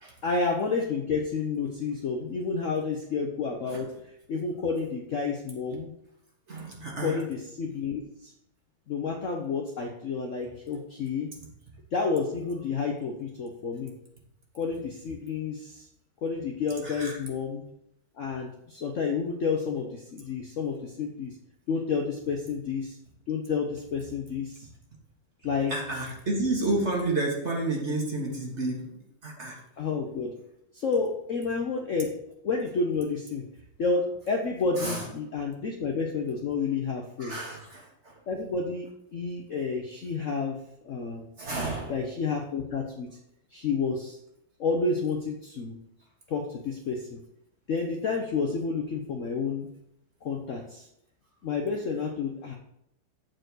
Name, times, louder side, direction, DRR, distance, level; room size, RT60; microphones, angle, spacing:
voice 1, 0.2-3.9 4.3-5.9 7.0-8.3 8.9-11.3 11.9-13.9 14.5-15.9 16.2-17.6 18.2-21.3 21.7-23.0 23.3-24.7 25.4-25.8 29.8-30.3 30.7-32.2 32.4-33.4 33.8-37.6 38.3-41.3 41.9-43.1 43.5-44.2 44.6-45.8 46.3-47.2 47.7-49.7 50.2-50.9 51.4-52.5, left 4 dB, 80° left, 2 dB, 0.6 m, -30 dB
voice 2, 6.5-7.2 16.8-17.1 25.7-28.9 29.2-29.6 34.8-35.0 37.2-38.1 41.4-41.9, right 2 dB, 35° right, -1 dB, 1.7 m, -30 dB
8.1 x 4.4 x 6.2 m, 0.78 s
omnidirectional pair, 2.4 m